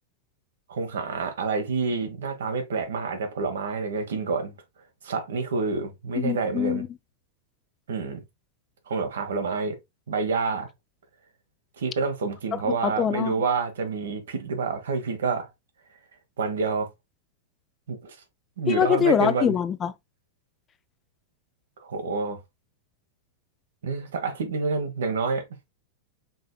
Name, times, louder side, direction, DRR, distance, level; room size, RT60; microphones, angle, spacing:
voice 1, 0.7-4.5 5.0-6.8 7.9-8.2 8.9-9.8 10.1-10.7 11.8-15.5 16.4-16.9 17.9-18.1 18.6-19.6 21.8-22.4 23.8-25.4, right 4 dB, 85° right, 1.3 m, -28 dB
voice 2, 6.2-6.9 12.7-13.3 18.7-19.9, left 8 dB, 25° left, 0.4 m, -24 dB
5.2 x 3.3 x 2.3 m
hypercardioid pair, 125°, 0 cm